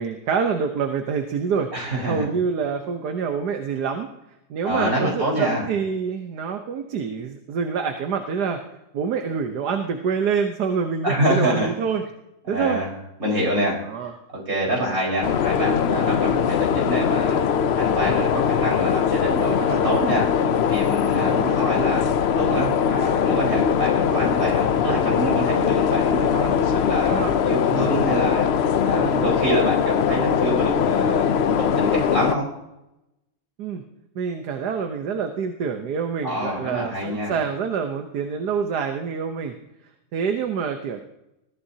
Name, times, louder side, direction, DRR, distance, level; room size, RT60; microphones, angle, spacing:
voice 1, 0.0-1.7 2.1-4.1 4.5-8.6 8.9-12.0 12.5-12.8 13.9-14.1 14.8-14.9 16.3-16.4 21.1-21.4 27.1-27.4 28.9-29.3 33.6-33.8 34.1-39.5 40.1-41.0, right 6 dB, 80° right, 5 dB, 1.5 m, -26 dB
voice 2, 1.7-2.3 4.6-5.7 11.0-11.7 12.5-12.9 13.2-13.8 14.3-17.4 17.7-22.0 22.3-31.3 31.6-32.5 36.2-37.4, right 1 dB, 60° right, -3 dB, 5.1 m, -26 dB
sound 1, 15.2-32.4, left 7 dB, 70° left, 0.6 m, -21 dB
21.5 x 14.5 x 2.8 m, 0.90 s
omnidirectional pair, 1.7 m